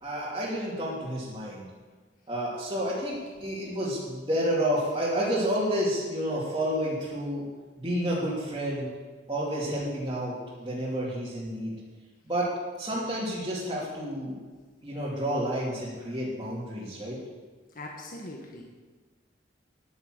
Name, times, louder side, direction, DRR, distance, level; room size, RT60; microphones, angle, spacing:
voice 1, 0.0-1.7 2.3-7.4 7.8-8.9 9.3-11.7 12.2-12.5 12.8-14.4 14.8-17.2, equal, 25° right, -9 dB, 2.9 m, -30 dB
voice 2, 17.7-18.6, left 2 dB, 50° left, -1 dB, 1.5 m, -41 dB
10.5 x 9.6 x 7.9 m, 1.4 s
head